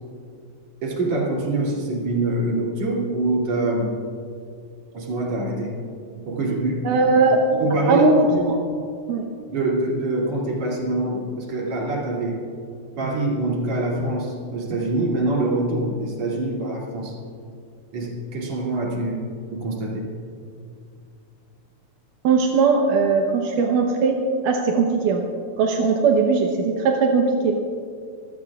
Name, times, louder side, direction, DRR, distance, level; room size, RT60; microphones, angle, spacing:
voice 1, 0.8-4.0 4.9-5.8 6.2-7.0 7.6-8.5 9.5-12.4 13.0-17.2 17.9-20.1, right 2 dB, 60° right, -3 dB, 3.7 m, -25 dB
voice 2, 6.8-7.4 7.9-8.6 9.1-9.3 22.2-24.2 24.4-25.3 25.6-27.5, right 4 dB, 85° right, 1 dB, 2.5 m, -19 dB
25.5 x 16.0 x 2.4 m, 2.4 s
omnidirectional pair, 3.6 m